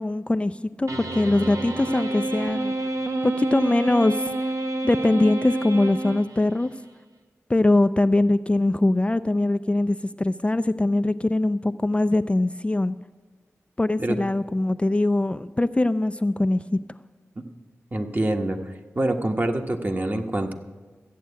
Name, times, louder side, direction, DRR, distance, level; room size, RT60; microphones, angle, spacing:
voice 1, 0.0-2.7 3.2-4.3 4.8-6.7 7.5-13.0 13.8-16.8, left 2 dB, 25° left, 11 dB, 0.4 m, -22 dB
sound 1, 0.9-6.7, right 2 dB, 80° right, 1.1 m, -29 dB
voice 2, 17.9-20.5, right 1 dB, 40° right, 4 dB, 1.3 m, -26 dB
13.5 x 8.4 x 8.3 m, 1.3 s
wide cardioid pair, 55°, 5 cm